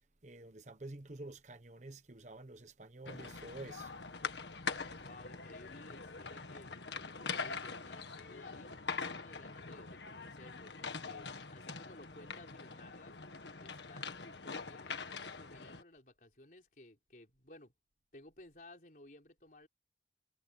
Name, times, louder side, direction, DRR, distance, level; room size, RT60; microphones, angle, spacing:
voice 1, 0.2-3.9, right 2 dB, 40° right, 1.1 m, -49 dB
sound 1, 3.0-15.8, left 5 dB, 85° left, 1.8 m, -43 dB
voice 2, 5.0-13.2 13.6-17.7 18.1-19.7, left 1 dB, 50° left, 4.5 m, -57 dB
head